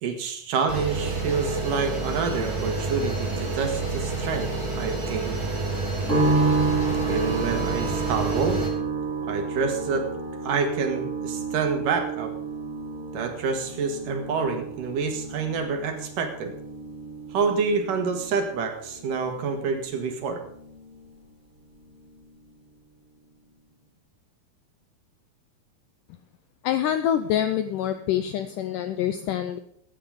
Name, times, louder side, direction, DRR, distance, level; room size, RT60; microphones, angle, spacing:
voice 1, 0.0-4.5 4.8-5.4 7.1-8.6 9.3-10.1 10.4-12.3 13.1-16.5 17.3-20.4, right 5 dB, 65° right, 5 dB, 3.0 m, -27 dB
sound 1, 0.7-8.7, right 3 dB, 25° right, 3.5 m, -29 dB
sound 2, 6.1-21.3 21.6-22.5, right 3 dB, 15° left, 6.1 m, -31 dB
voice 2, 26.6-29.6, left 10 dB, 85° left, 10 dB, 1.9 m, -26 dB
15.5 x 10.0 x 5.2 m, 0.66 s
omnidirectional pair, 4.5 m